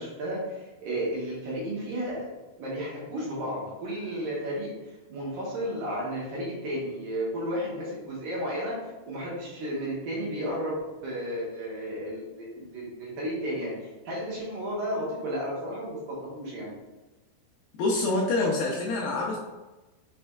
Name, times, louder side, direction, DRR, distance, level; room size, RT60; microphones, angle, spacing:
voice 1, 0.0-2.3 2.6-8.8 9.1-16.7, equal, 70° right, -5 dB, 2.4 m, -33 dB
voice 2, 17.8-19.4, left 2 dB, 85° left, -2 dB, 2.2 m, -26 dB
6.2 x 3.2 x 2.3 m, 1.1 s
omnidirectional pair, 4.7 m